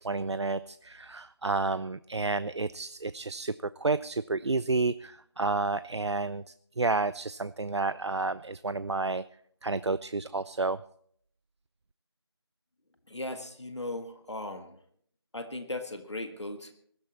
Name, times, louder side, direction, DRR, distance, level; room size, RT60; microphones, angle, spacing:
voice 1, 0.0-3.5 3.8-6.4 6.8-9.2 9.6-10.8, right 3 dB, 80° right, 15 dB, 0.5 m, -30 dB
voice 2, 13.1-14.8 15.3-16.7, left 2 dB, 85° left, 8 dB, 1.8 m, -37 dB
20.5 x 12.5 x 4.2 m, 0.64 s
figure-of-eight pair, 175°, 14 cm